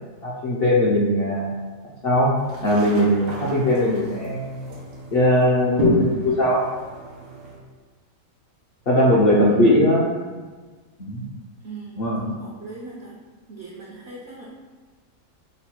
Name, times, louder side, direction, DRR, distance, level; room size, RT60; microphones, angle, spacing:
voice 1, 0.2-1.5 2.0-2.3 2.6-4.7 5.1-6.6 8.9-10.1 11.0-11.2 12.0-12.2, left 1 dB, 60° left, -5 dB, 0.6 m, -19 dB
sound 1, 2.4-7.6, equal, 80° right, 1.3 m, -31 dB
voice 2, 9.3-9.6 11.6-13.2 13.5-14.5, right 3 dB, 60° right, -5 dB, 0.8 m, -39 dB
3.1 x 2.2 x 4.2 m, 1.4 s
omnidirectional pair, 1.5 m